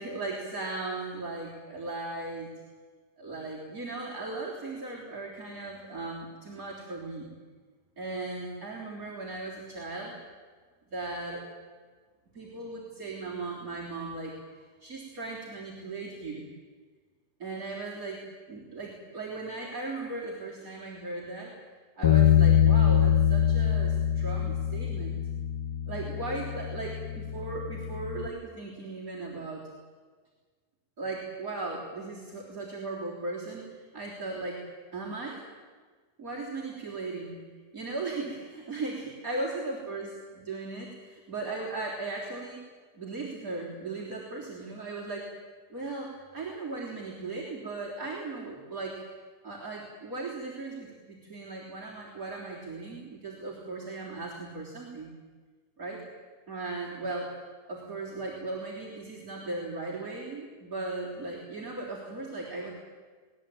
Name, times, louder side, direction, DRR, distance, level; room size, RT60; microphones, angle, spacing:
voice 1, 0.0-2.5 3.2-7.3 8.0-10.1 10.9-11.4 12.3-16.5 17.4-21.5 22.0-25.2 25.9-29.6 31.0-34.6 34.9-35.4 36.2-37.4 37.7-40.1 40.4-42.6 42.9-45.3 45.7-49.0 49.4-55.1 55.8-56.0 56.5-57.3 57.7-62.7, right 3 dB, 60° right, -5 dB, 4.2 m, -37 dB
Bass guitar, 22.0-28.3, left 9 dB, 80° left, 1.5 m, -24 dB
20.0 x 20.0 x 8.9 m, 1.5 s
omnidirectional pair, 1.7 m